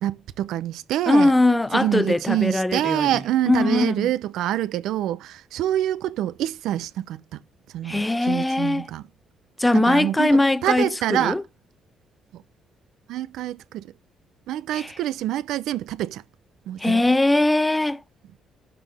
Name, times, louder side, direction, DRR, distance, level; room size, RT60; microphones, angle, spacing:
voice 1, 0.0-1.3 1.7-7.4 7.7-9.0 9.7-11.4 12.3-12.4 13.1-13.9 14.5-16.2 16.7-17.0, right 12 dB, 75° right, 0.6 m, -26 dB
voice 2, 1.1-3.1 3.5-4.1 7.8-8.9 9.6-11.4 14.7-14.9 16.8-18.0, left 2 dB, 15° left, 0.8 m, -20 dB
12.0 x 5.2 x 3.4 m
hypercardioid pair, 50°, 0 cm